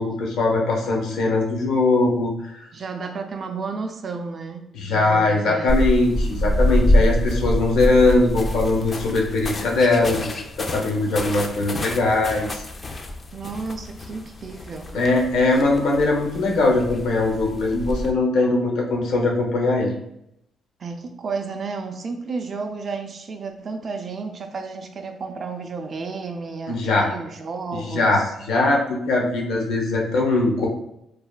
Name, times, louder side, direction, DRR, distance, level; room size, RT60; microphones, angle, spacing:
voice 1, 0.0-2.6 4.7-12.6 14.9-19.9 26.7-27.1 27.7-30.7, left 2 dB, 85° left, 0 dB, 0.6 m, -21 dB
voice 2, 2.7-5.8 13.3-15.0 20.8-28.3, right 4 dB, 45° right, 5 dB, 0.3 m, -32 dB
sound 1, 5.7-18.1, equal, 35° left, 0.3 m, -26 dB
3.2 x 2.1 x 2.2 m, 0.80 s
cardioid pair, 90°, 0 cm